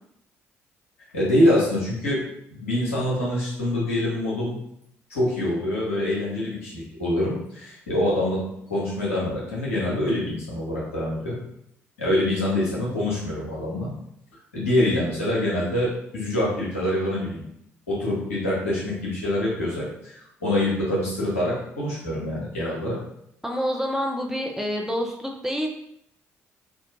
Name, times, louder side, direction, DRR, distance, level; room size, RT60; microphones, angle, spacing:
voice 1, 1.1-2.2 2.5-4.6 5.1-8.4 8.7-11.3 12.0-13.9 14.5-17.5 17.9-23.0, left 1 dB, 80° left, -7 dB, 1.0 m, -25 dB
voice 2, 23.4-25.7, equal, 5° right, 1 dB, 0.6 m, -27 dB
3.6 x 2.3 x 2.7 m, 0.74 s
figure-of-eight pair, 45°, 7 cm